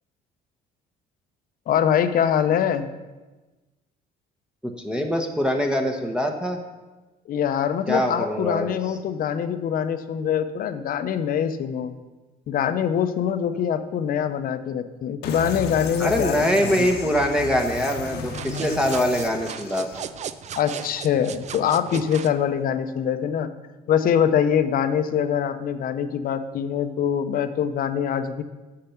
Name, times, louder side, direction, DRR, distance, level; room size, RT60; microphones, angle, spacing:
voice 1, 1.7-2.9 7.3-12.0 12.5-16.9 20.6-23.5 23.9-28.4, left 8 dB, 60° left, 10 dB, 0.7 m, -24 dB
voice 2, 4.6-6.6 7.9-8.8 16.0-20.1, equal, 5° right, 3 dB, 0.9 m, -23 dB
sound 1, 15.2-20.0, left 4 dB, 80° left, 1.1 m, -34 dB
sound 2, 18.2-22.4, right 8 dB, 45° right, 0.4 m, -36 dB
8.6 x 6.7 x 5.8 m, 1.2 s
cardioid pair, 110°, 17 cm